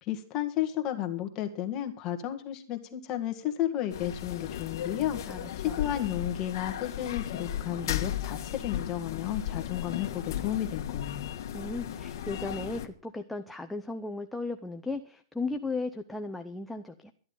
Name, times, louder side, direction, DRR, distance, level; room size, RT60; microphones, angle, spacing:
voice 1, 0.0-5.2 5.6-11.3, left 12 dB, 30° left, 5 dB, 1.8 m, -33 dB
sound 1, 3.9-12.9, left 10 dB, 60° left, 1.7 m, -35 dB
voice 2, 5.3-5.8 11.5-17.1, left 3 dB, 5° left, 5 dB, 0.6 m, -36 dB
13.5 x 10.5 x 5.5 m, 0.43 s
supercardioid pair, 160°, 2 cm